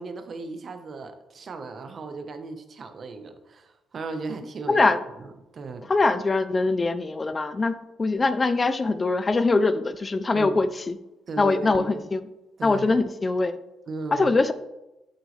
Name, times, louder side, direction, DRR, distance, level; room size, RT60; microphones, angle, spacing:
voice 1, 0.0-4.9 5.2-5.3 5.5-5.9 10.3-10.6 11.3-12.1 12.6-13.0 13.9-14.4, right 3 dB, 50° right, 7 dB, 1.1 m, -36 dB
voice 2, 4.7-5.0 5.9-11.0 11.4-12.2 12.6-13.6 14.1-14.5, left 3 dB, 30° left, 12 dB, 0.5 m, -23 dB
8.1 x 8.0 x 3.3 m, 0.96 s
cardioid pair, 90°, 0 cm